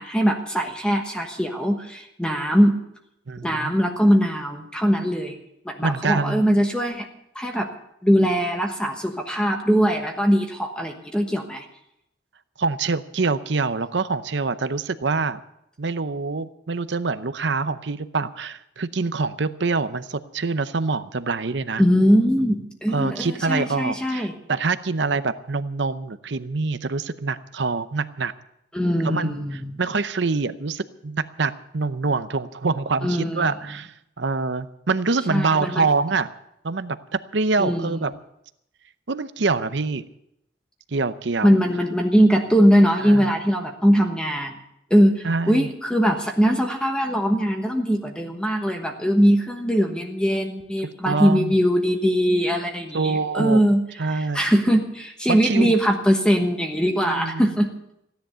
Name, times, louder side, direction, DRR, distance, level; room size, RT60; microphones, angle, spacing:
voice 1, 0.0-2.8 3.4-5.4 5.6-7.1 7.3-7.7 8.0-11.6 21.8-24.3 28.7-29.8 33.0-33.5 35.3-35.9 37.6-38.0 41.4-44.6 44.9-57.7, equal, 5° left, 3 dB, 1.2 m, -21 dB
voice 2, 3.3-3.7 5.8-6.4 12.6-15.4 15.8-21.8 22.9-28.3 29.0-29.4 29.8-36.3 36.6-37.0 37.3-38.1 39.1-40.0 40.9-41.6 43.0-43.3 45.2-45.7 51.0-51.5 52.9-53.6 54.0-54.4 55.3-55.8 57.0-57.5, right 4 dB, 65° right, 12 dB, 0.7 m, -25 dB
16.0 x 10.5 x 6.9 m, 0.81 s
head